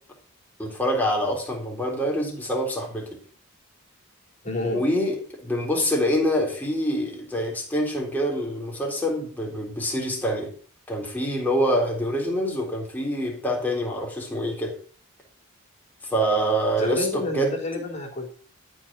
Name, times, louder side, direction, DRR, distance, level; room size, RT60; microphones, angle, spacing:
voice 1, 0.6-3.1 4.7-10.5 10.9-14.8 16.0-17.5, equal, 10° left, -1 dB, 3.7 m, -25 dB
voice 2, 4.4-4.8 16.8-18.3, left 2 dB, 35° left, -1 dB, 4.0 m, -28 dB
13.0 x 6.4 x 6.2 m, 0.43 s
head